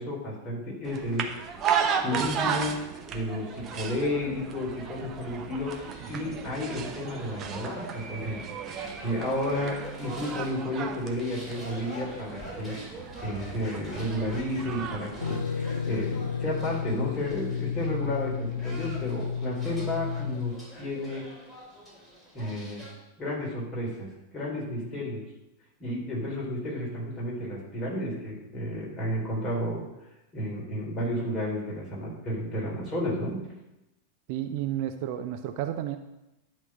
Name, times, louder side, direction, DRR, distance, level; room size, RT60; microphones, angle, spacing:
voice 1, 0.0-1.6 2.0-2.8 3.1-8.4 8.7-12.7 13.2-21.2 22.3-22.8 23.2-25.2 25.8-29.8 30.3-33.4, left 1 dB, 25° left, -4 dB, 4.0 m, -32 dB
sound 1, 0.8-15.4, right 7 dB, 30° right, 1.0 m, -35 dB
sound 2, 5.7-22.9, equal, ahead, 4.1 m, -46 dB
sound 3, 15.2-20.5, left 7 dB, 70° left, 0.4 m, -32 dB
voice 2, 34.3-36.0, right 11 dB, 45° right, 8 dB, 0.6 m, -32 dB
11.0 x 4.0 x 7.6 m, 0.94 s
figure-of-eight pair, 90°, 0 cm